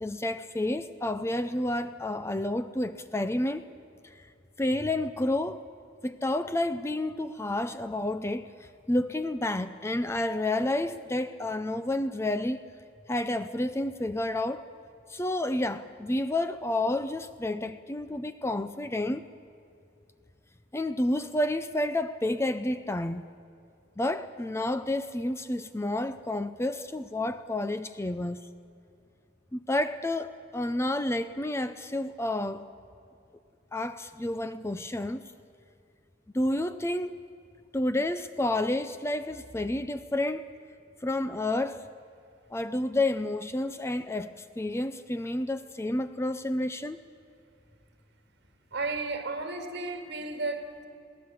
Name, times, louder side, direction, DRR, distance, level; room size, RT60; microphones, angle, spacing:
voice 1, 0.0-3.7 4.0-4.3 4.6-5.6 6.0-12.7 13.1-14.7 15.1-19.2 20.7-23.3 24.0-28.5 29.5-32.6 33.7-35.2 36.3-37.2 37.7-40.5 41.0-41.8 42.5-47.0, left 1 dB, 15° left, 12 dB, 0.5 m, -30 dB
voice 2, 48.7-50.8, right 3 dB, 60° right, 5 dB, 2.3 m, -33 dB
22.0 x 16.0 x 8.4 m, 2.6 s
head